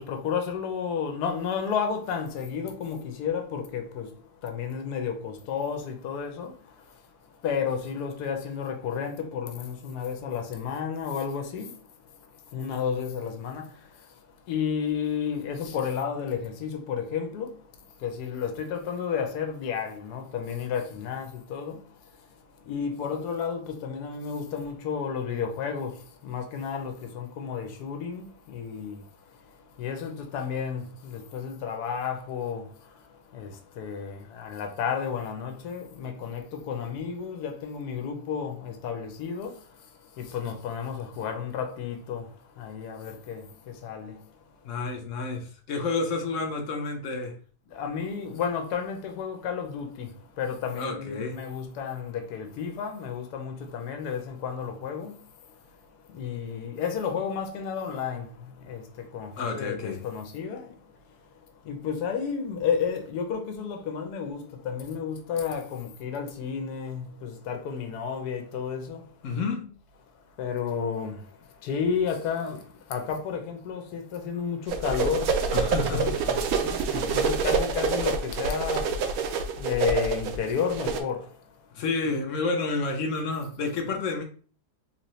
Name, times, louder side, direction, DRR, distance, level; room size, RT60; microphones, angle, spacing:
voice 1, 0.0-4.1 4.4-6.5 7.4-11.7 12.5-13.7 14.5-17.6 18.0-21.8 22.7-29.0 29.8-32.7 33.3-39.6 40.2-42.3 42.6-44.2 47.7-55.2 56.1-60.8 61.7-69.1 70.4-71.2 71.6-75.5 75.7-79.0 79.6-81.3, left 7 dB, 75° left, 1.2 m, -32 dB
voice 2, 44.6-47.4 50.8-51.4 59.4-60.0 69.2-69.7 75.5-76.1 81.7-84.2, left 3 dB, 60° left, 0.9 m, -30 dB
sound 1, 74.7-81.0, right 5 dB, 70° right, 0.9 m, -27 dB
3.7 x 2.7 x 3.1 m
omnidirectional pair, 1.7 m